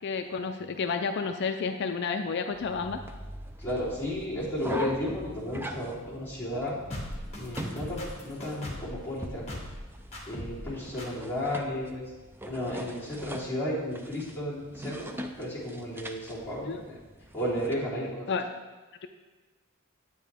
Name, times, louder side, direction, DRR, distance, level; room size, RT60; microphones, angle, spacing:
voice 1, 0.0-3.0 16.7-16.8 18.3-18.4, left 5 dB, 50° left, 6 dB, 0.4 m, -30 dB
sound 1, 2.5-17.7, equal, 10° right, 0.4 m, -42 dB
voice 2, 3.6-6.8 7.4-9.5 10.3-12.0 12.4-16.7 17.3-18.3, left 1 dB, 10° left, -10 dB, 3.4 m, -33 dB
sound 2, 6.9-9.0 9.5-9.8 10.1-10.7 11.0-11.1, left 1 dB, 30° left, 1.9 m, -38 dB
9.7 x 9.1 x 3.5 m, 1.3 s
head